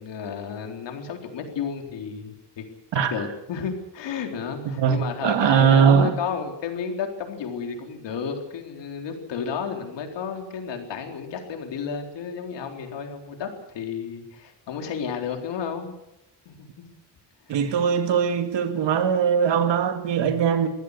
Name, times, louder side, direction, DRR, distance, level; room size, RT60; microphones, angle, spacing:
voice 1, 0.0-2.6 2.9-16.0 16.5-16.9 17.5-17.8, left 6 dB, 85° left, 3.9 m, -32 dB
voice 2, 4.7-6.2 17.5-20.7, right 7 dB, 85° right, 2.3 m, -20 dB
23.0 x 16.0 x 8.2 m
wide cardioid pair, 175°, 42 cm